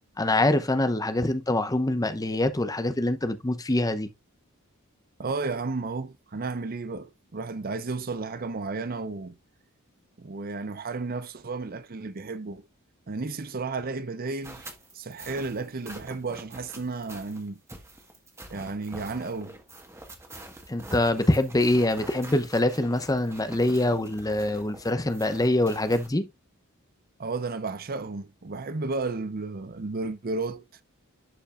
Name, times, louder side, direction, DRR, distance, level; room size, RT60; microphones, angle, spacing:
voice 1, 0.2-4.1 20.7-26.3, left 1 dB, 15° left, 0.7 m, -24 dB
voice 2, 5.2-9.4 10.2-12.7 13.1-14.7 14.9-17.6 18.5-19.6 27.2-30.6, right 3 dB, 40° right, 0.6 m, -33 dB
sound 1, 14.4-26.1, right 1 dB, 10° right, 1.5 m, -45 dB
11.5 x 5.2 x 2.5 m
head